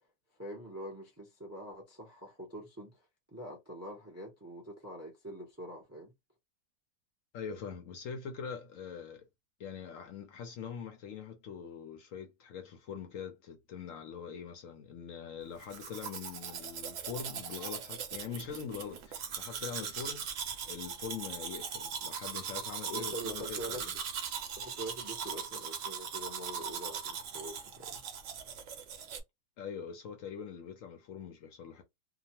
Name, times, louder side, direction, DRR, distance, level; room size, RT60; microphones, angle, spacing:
voice 1, 0.4-2.9 3.3-6.1 22.9-23.8 24.6-28.0, right 1 dB, 20° right, 0.4 m, -44 dB
voice 2, 7.3-9.3 9.6-23.9 29.6-31.8, left 7 dB, 65° left, 0.9 m, -43 dB
Domestic sounds home sounds, 15.6-29.2, right 7 dB, 65° right, 0.9 m, -40 dB
2.8 x 2.2 x 2.8 m
omnidirectional pair, 1.7 m